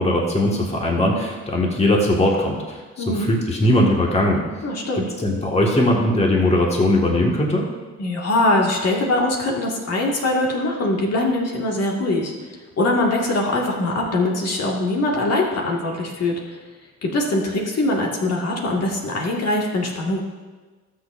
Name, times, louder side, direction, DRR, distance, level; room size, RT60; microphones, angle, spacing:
voice 1, 0.0-4.4 5.2-7.7, left 1 dB, 20° left, -1 dB, 1.8 m, -19 dB
voice 2, 4.6-5.1 8.0-12.3 12.8-16.6 17.0-20.2, left 2 dB, 55° left, -2 dB, 2.0 m, -22 dB
19.5 x 6.5 x 2.6 m, 1.3 s
cardioid pair, 90°, 30 cm